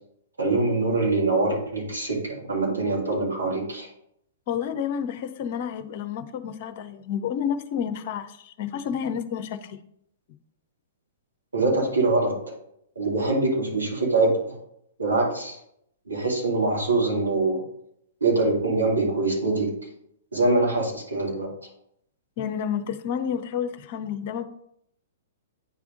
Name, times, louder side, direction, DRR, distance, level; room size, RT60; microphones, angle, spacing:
voice 1, 0.4-3.9 11.5-12.4 13.0-14.5 15.0-15.6 16.1-17.6 18.2-19.7 20.3-21.5, right 2 dB, 85° right, -3 dB, 2.5 m, -24 dB
voice 2, 4.5-9.8 22.4-24.5, left 8 dB, 45° left, 10 dB, 0.6 m, -30 dB
9.3 x 3.5 x 3.7 m, 0.72 s
figure-of-eight pair, 115°, 0 cm